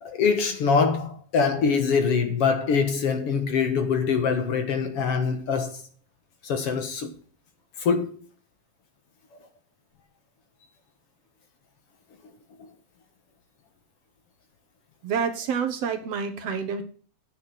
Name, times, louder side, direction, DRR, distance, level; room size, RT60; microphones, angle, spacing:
voice 1, 0.0-5.8 6.4-7.1 7.8-8.1, left 5 dB, 55° left, 2.2 m, -24 dB
voice 2, 15.0-16.8, right 6 dB, 65° right, 2.1 m, -28 dB
9.9 x 8.4 x 5.9 m
omnidirectional pair, 3.3 m